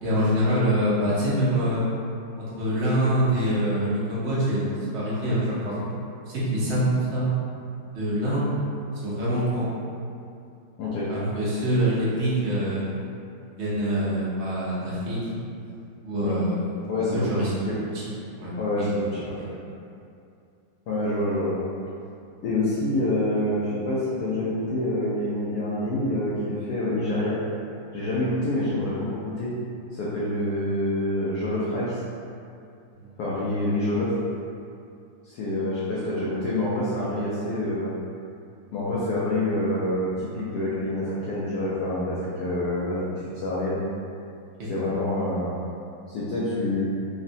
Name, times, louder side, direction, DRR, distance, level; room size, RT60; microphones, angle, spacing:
voice 1, 0.0-1.8 2.6-5.8 6.3-7.3 7.9-8.5 9.0-9.7 11.1-12.9 13.6-15.4 16.0-17.6 17.9-18.1 18.4-18.9 19.4-19.6 33.0-33.1 44.6-44.7, equal, 55° right, -9 dB, 0.7 m, -25 dB
voice 2, 16.9-17.7 18.6-18.9 19.2-19.4 20.9-21.7 22.4-27.4 27.9-29.5 29.9-32.0 33.2-34.1 35.2-37.9 38.7-43.0 43.3-43.8 44.7-45.6 46.1-46.9, left 1 dB, 75° left, -8 dB, 0.9 m, -27 dB
3.7 x 2.1 x 2.6 m, 2.5 s
omnidirectional pair, 2.2 m